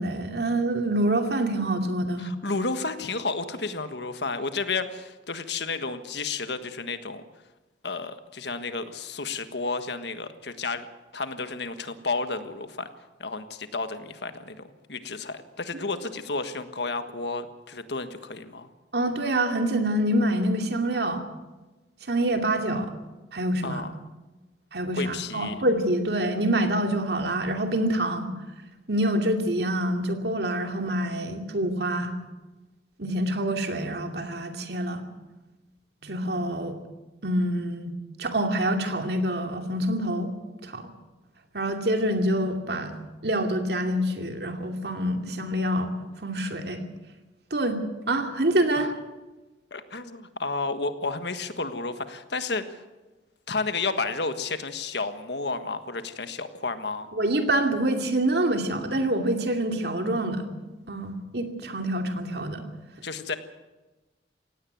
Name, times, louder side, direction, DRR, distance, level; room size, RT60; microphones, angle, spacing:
voice 1, 0.0-2.3 18.9-21.2 22.1-22.9 23.3-23.8 24.7-28.3 28.9-32.1 33.0-35.0 36.0-36.8 37.2-40.3 40.6-40.9 41.5-42.9 43.2-45.9 46.2-46.8 47.5-47.8 48.1-48.9 57.1-60.5 60.9-62.6, right 1 dB, 60° right, 5 dB, 2.5 m, -26 dB
voice 2, 2.2-7.2 7.8-10.9 11.1-12.9 13.2-18.7 23.6-23.9 25.0-25.6 48.8-48.9 49.7-52.8 53.5-57.1 63.0-63.4, left 3 dB, 70° left, 10 dB, 1.5 m, -31 dB
17.5 x 16.5 x 9.3 m, 1.1 s
head